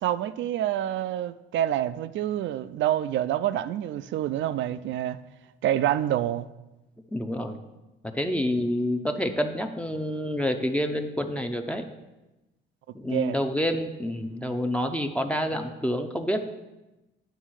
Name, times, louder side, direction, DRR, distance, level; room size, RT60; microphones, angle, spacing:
voice 1, 0.0-5.2 5.6-6.5 13.1-13.4, right 12 dB, 70° right, 0.4 m, -27 dB
voice 2, 7.1-7.6 8.0-11.8 12.9-16.4, equal, 5° left, 0.6 m, -28 dB
9.2 x 3.5 x 6.3 m
cardioid pair, 90°, 20 cm